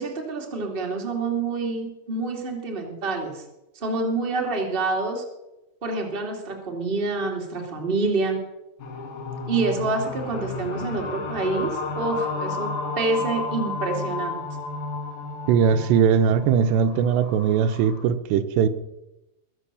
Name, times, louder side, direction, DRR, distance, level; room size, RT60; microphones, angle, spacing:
voice 1, 0.0-3.4 3.7-5.2 5.8-8.4 9.5-14.4, right 3 dB, 15° right, 1 dB, 2.0 m, -27 dB
sound 1, 8.8-18.0, left 3 dB, 60° left, 3.6 m, -32 dB
voice 2, 15.5-18.7, right 7 dB, 85° right, 11 dB, 3.0 m, -20 dB
21.5 x 8.1 x 6.9 m, 0.95 s
omnidirectional pair, 4.8 m